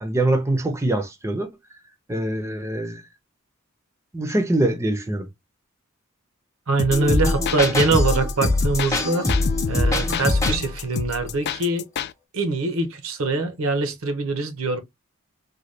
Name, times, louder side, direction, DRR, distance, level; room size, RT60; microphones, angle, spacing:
voice 1, 0.0-1.5 2.1-3.0 4.1-5.3, right 1 dB, 15° right, 0.6 m, -23 dB
voice 2, 6.7-9.3 9.7-11.9 12.3-14.8, right 3 dB, 75° right, 0.8 m, -23 dB
sound 1, 6.8-12.1, left 7 dB, 50° left, 0.3 m, -30 dB
sound 2, 6.9-10.7, left 2 dB, 15° left, 0.8 m, -22 dB
3.9 x 2.2 x 3.1 m
head